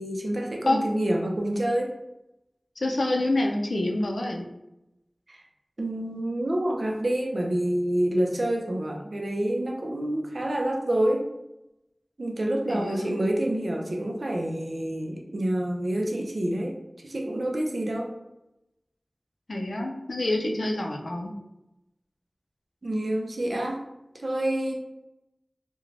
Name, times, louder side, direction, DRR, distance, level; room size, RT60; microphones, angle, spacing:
voice 1, 0.0-2.0 5.3-5.4 5.8-11.3 12.2-16.8 17.0-18.1 22.8-23.8 24.2-24.7, right 1 dB, 70° right, 1 dB, 0.4 m, -27 dB
voice 2, 2.8-4.5 12.7-13.2 19.5-21.3, left 2 dB, 85° left, 1 dB, 0.4 m, -27 dB
2.4 x 2.1 x 3.2 m, 0.90 s
wide cardioid pair, 55°, 0 cm